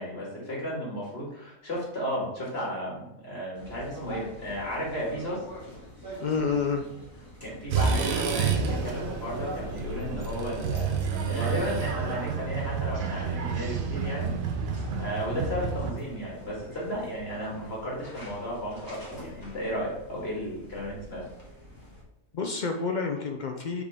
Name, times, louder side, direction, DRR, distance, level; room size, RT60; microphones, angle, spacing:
voice 1, 0.0-5.4 7.4-14.3 15.0-21.2, equal, 45° left, -5 dB, 2.3 m, -34 dB
sound 1, 3.5-22.0, equal, 15° left, 1.6 m, -45 dB
voice 2, 6.2-6.8 22.3-23.8, left 5 dB, 70° left, 4 dB, 0.4 m, -29 dB
sound 2, 7.7-15.9, right 5 dB, 75° right, 1.2 m, -29 dB
5.3 x 5.1 x 3.4 m, 0.91 s
omnidirectional pair, 1.5 m